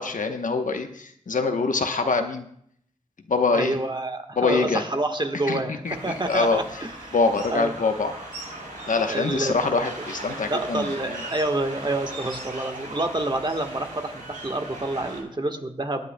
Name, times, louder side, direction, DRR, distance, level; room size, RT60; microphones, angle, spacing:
voice 1, 0.0-2.5 3.3-3.8 4.4-4.8 5.5-6.6 7.1-8.1 8.9-11.2, left 4 dB, 75° left, 6 dB, 1.0 m, -24 dB
voice 2, 3.5-7.2 7.5-7.7 9.1-9.5 10.3-16.0, right 2 dB, 35° right, 5 dB, 1.3 m, -28 dB
sound 1, 5.8-15.2, right 1 dB, 85° right, 3.5 m, -39 dB
23.0 x 9.0 x 2.2 m, 0.67 s
wide cardioid pair, 55°, 14 cm